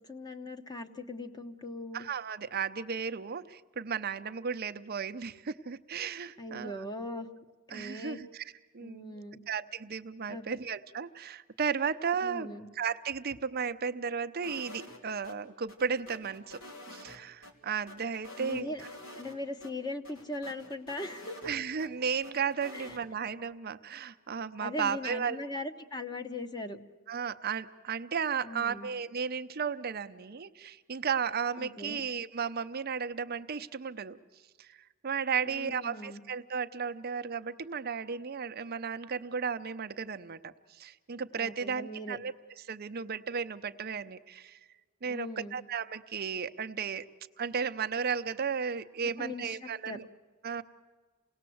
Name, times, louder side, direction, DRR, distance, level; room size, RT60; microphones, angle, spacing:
voice 1, 0.0-2.1 6.4-7.3 7.7-8.2 8.8-9.4 10.3-10.4 12.2-12.7 18.4-18.8 19.1-21.5 22.7-23.0 24.6-26.8 28.4-28.9 31.6-32.0 35.5-36.2 41.3-42.2 45.0-45.6 49.2-50.0, left 1 dB, 20° left, 6 dB, 1.0 m, -40 dB
voice 2, 1.9-6.8 7.7-8.4 8.7-9.1 9.5-12.5 12.8-16.6 16.9-18.7 21.4-25.4 27.1-34.2 34.6-42.3 42.6-44.6 45.0-47.1 47.4-50.1 50.4-50.6, right 6 dB, 50° right, 10 dB, 0.6 m, -34 dB
sound 1, 14.4-15.4 15.7-17.5 17.9-19.4 19.6-19.7 20.0-21.9 22.2-23.0, left 1 dB, 85° left, 3.1 m, -48 dB
28.0 x 18.5 x 7.8 m, 1.4 s
head